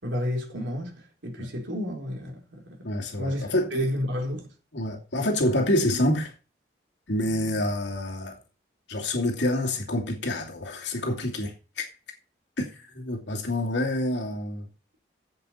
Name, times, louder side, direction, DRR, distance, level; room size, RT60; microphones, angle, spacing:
voice 1, 0.0-3.5 3.7-4.5, left 1 dB, 90° right, 3.9 m, -31 dB
voice 2, 2.8-3.9 4.7-6.3 7.1-8.4 8.9-11.9 12.6-14.7, left 1 dB, 75° left, 2.7 m, -27 dB
15.5 x 5.9 x 4.3 m
head